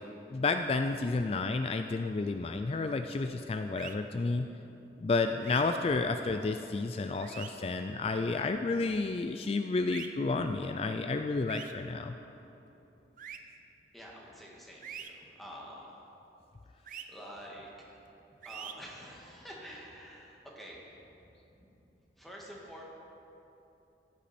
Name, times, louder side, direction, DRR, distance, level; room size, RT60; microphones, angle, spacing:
voice 1, 0.3-4.5 5.0-12.1, left 3 dB, 35° left, 7 dB, 0.3 m, -31 dB
sound 1, 3.8-4.0 5.4-5.6 7.2-7.5 9.9-10.1 11.5-11.7 13.2-13.4 14.8-15.1 16.9-17.0 18.4-18.7, right 9 dB, 50° right, 0.6 m, -43 dB
voice 2, 13.9-15.9 17.1-18.0 18.4-20.8 22.2-22.8, equal, ahead, -4 dB, 1.7 m, -48 dB
15.5 x 8.6 x 4.3 m, 2.9 s
head